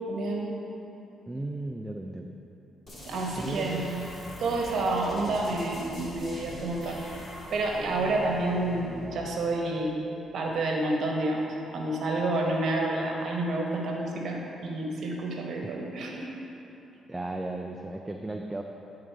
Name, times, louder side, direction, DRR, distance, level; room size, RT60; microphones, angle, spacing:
voice 1, 0.1-0.6 3.1-4.1 4.4-7.0 7.5-10.0 10.3-11.5 11.7-16.3, right 2 dB, 65° right, 0 dB, 1.0 m, -29 dB
voice 2, 1.3-2.3 3.4-3.9 17.1-18.6, right 2 dB, 15° right, 2 dB, 0.4 m, -35 dB
sound 1, 2.9-10.4, left 1 dB, 30° left, 1.6 m, -43 dB
9.7 x 3.7 x 4.6 m, 3.0 s
cardioid pair, 90°, 0 cm